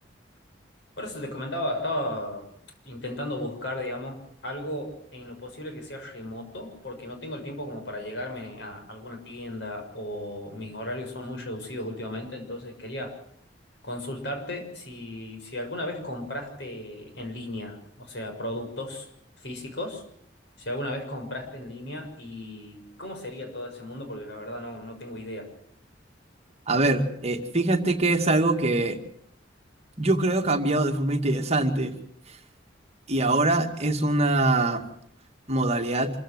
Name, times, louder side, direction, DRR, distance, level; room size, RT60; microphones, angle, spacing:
voice 1, 1.0-2.4 2.8-13.1 13.8-19.1 19.4-20.0 20.6-25.5, left 1 dB, 65° left, 4 dB, 6.6 m, -35 dB
voice 2, 26.7-29.0 30.0-31.9 33.1-34.8 35.5-36.1, right 2 dB, 35° right, 5 dB, 2.1 m, -23 dB
26.5 x 15.0 x 8.0 m, 0.69 s
head